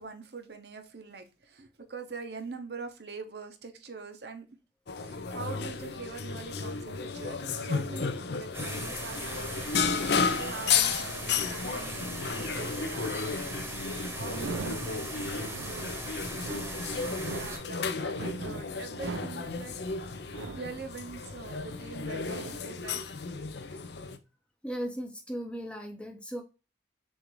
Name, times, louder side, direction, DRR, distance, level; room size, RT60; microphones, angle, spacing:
voice 1, 0.0-4.5 5.0-13.6 14.2-15.9 16.9-19.8 20.5-23.1, right 4 dB, 60° right, 0.7 m, -44 dB
sound 1, 4.9-24.2, left 5 dB, 60° left, 0.5 m, -33 dB
sound 2, 8.5-17.6, right 1 dB, 10° right, 0.9 m, -39 dB
sound 3, 13.8-21.7 22.1-22.9, right 4 dB, 90° right, 0.4 m, -42 dB
voice 2, 24.6-26.4, equal, 5° left, 0.6 m, -37 dB
6.2 x 2.5 x 3.0 m
head